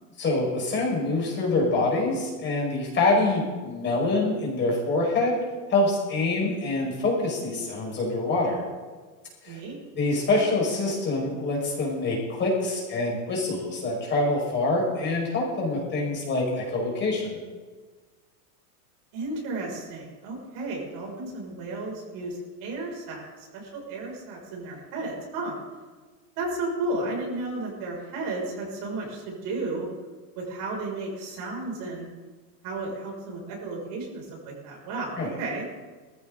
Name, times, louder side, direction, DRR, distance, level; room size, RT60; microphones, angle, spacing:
voice 1, 0.2-5.4 5.7-8.6 9.4-9.6 10.0-17.4 35.2-35.3, left 2 dB, 25° left, -2 dB, 5.3 m, -25 dB
voice 2, 9.4-9.8 19.1-25.5 26.4-29.9 30.3-32.1 32.6-35.7, right 2 dB, 50° right, -2 dB, 6.4 m, -33 dB
19.5 x 15.0 x 3.9 m, 1.4 s
supercardioid pair, 145°, 46 cm